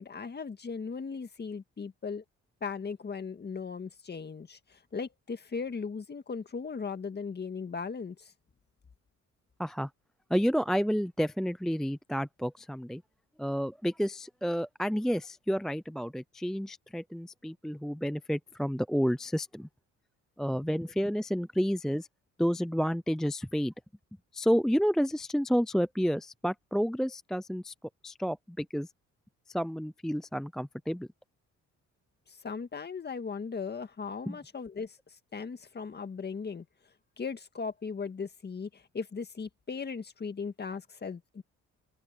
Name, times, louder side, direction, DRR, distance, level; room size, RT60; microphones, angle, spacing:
voice 1, 0.0-2.2 2.6-8.3 32.3-35.0 35.3-36.7 37.2-41.4, left 5 dB, 35° left, 1.8 m, -38 dB
voice 2, 9.6-9.9 10.3-13.0 13.4-19.7 20.4-22.1 22.4-23.7 24.3-27.7 28.0-28.9 29.5-31.1 34.3-34.4, equal, ahead, 0.4 m, -30 dB
cardioid pair, 90°, 30 cm